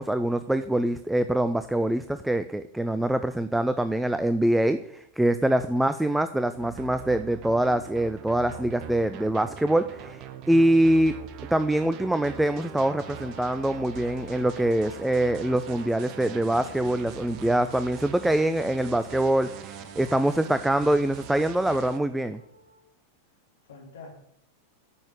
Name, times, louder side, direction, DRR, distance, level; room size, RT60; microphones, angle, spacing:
voice 1, 0.0-11.1 11.5-22.4, right 1 dB, 5° right, 11 dB, 0.5 m, -24 dB
voice 2, 5.5-6.2 23.6-24.1, left 3 dB, 60° left, 0 dB, 3.0 m, -46 dB
sound 1, 6.6-22.0, right 8 dB, 40° right, 1.1 m, -42 dB
Wind instrument woodwind instrument, 12.9-22.9, left 1 dB, 85° right, 1.8 m, -50 dB
10.0 x 6.5 x 8.6 m, 0.73 s
figure-of-eight pair, 90°, 0 cm